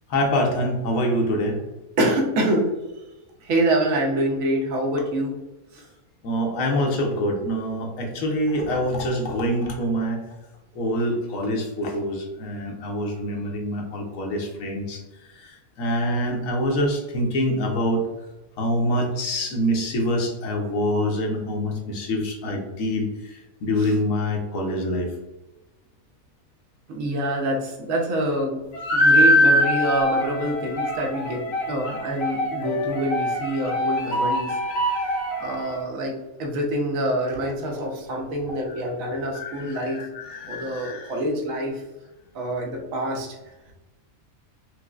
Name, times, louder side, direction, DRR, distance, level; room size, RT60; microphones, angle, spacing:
voice 1, 0.1-1.6 6.2-10.2 10.8-15.0 15.8-18.0 18.6-23.1 23.6-25.1 38.7-38.8 39.1-41.2, equal, 70° left, 1 dB, 1.1 m, -25 dB
voice 2, 2.0-2.7 3.4-5.4 5.7-5.8 23.8-23.9 26.9-28.7 28.9-31.4 31.7-34.6 34.9-40.1 40.5-41.8 42.3-43.4, right 1 dB, 70° right, 1 dB, 1.1 m, -26 dB
sound 1, 28.7-35.8, left 1 dB, 85° left, 1.6 m, -23 dB
4.6 x 2.0 x 2.3 m, 1.1 s
omnidirectional pair, 1.5 m